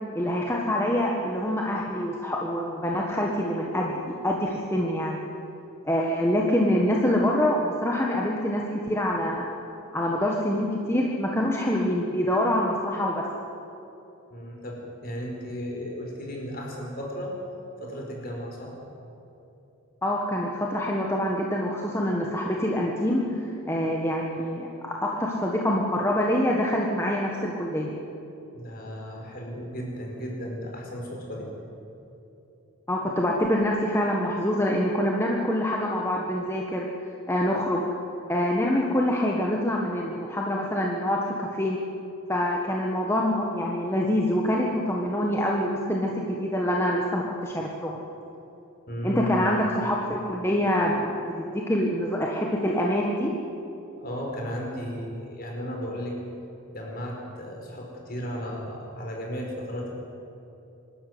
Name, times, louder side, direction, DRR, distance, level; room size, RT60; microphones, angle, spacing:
voice 1, 0.1-5.2 5.8-9.5 9.9-13.2 20.0-27.9 32.9-36.8 37.3-37.8 38.3-41.8 42.3-48.0 49.0-51.2 51.5-53.3, left 1 dB, 10° left, -2 dB, 1.5 m, -25 dB
voice 2, 14.3-17.4 17.8-18.8 28.5-31.5 48.9-49.5 54.0-56.1 56.7-59.9, equal, 40° left, 0 dB, 5.0 m, -35 dB
25.0 x 13.0 x 9.5 m, 2.9 s
head